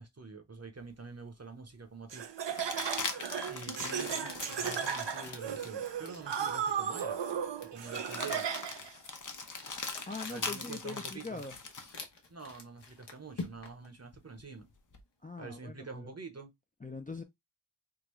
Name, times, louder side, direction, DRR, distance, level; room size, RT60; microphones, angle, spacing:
voice 1, 0.0-2.3 3.5-7.2 7.7-8.5 10.3-11.4 12.3-14.7 15.4-16.5, right 4 dB, 35° right, 0.9 m, -46 dB
sound 1, 0.9-1.0 2.5-5.9 6.5-6.6 7.9-12.0 14.1-15.0, left 4 dB, 45° left, 0.8 m, -41 dB
Laughter, 2.1-8.9, right 8 dB, 80° right, 0.6 m, -35 dB
Crumpling crinkling, 3.8-13.9, left 3 dB, 75° left, 1.0 m, -48 dB
voice 2, 10.1-11.5 15.2-16.1 16.8-17.2, left 3 dB, 20° left, 0.4 m, -42 dB
3.7 x 2.3 x 3.0 m
wide cardioid pair, 40°, 42 cm